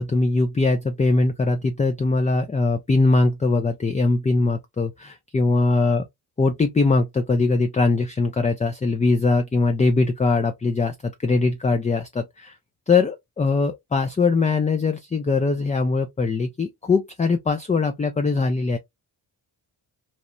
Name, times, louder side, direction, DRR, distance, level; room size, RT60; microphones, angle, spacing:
voice 1, 0.0-6.0 6.4-12.5 12.9-18.8, left 3 dB, 15° left, 0.4 m, -21 dB
3.0 x 2.0 x 2.5 m
supercardioid pair, 45°, 48 cm